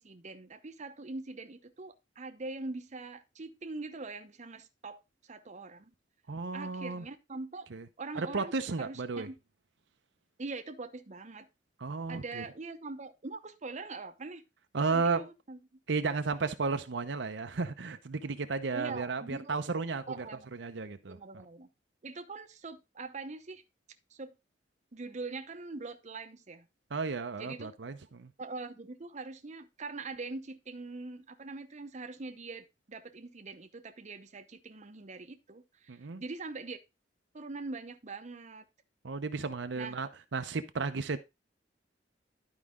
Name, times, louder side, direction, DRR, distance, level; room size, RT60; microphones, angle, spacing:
voice 1, 0.0-5.9 6.5-7.7 8.0-8.5 8.8-9.4 10.4-11.5 12.1-14.4 14.9-15.6 18.7-19.6 20.1-20.5 21.1-21.7 22.0-23.6 24.1-24.4 24.9-26.7 27.4-27.7 28.4-36.8 37.3-38.6 39.8-40.0, right 3 dB, 40° right, 0.8 m, -43 dB
voice 2, 6.3-7.0 7.7-7.8 8.1-9.3 11.8-12.4 14.7-15.3 15.9-20.3 20.5-21.2 26.9-28.3 35.9-36.2 39.0-41.2, right 4 dB, 75° right, 0.7 m, -33 dB
11.5 x 4.9 x 3.6 m
head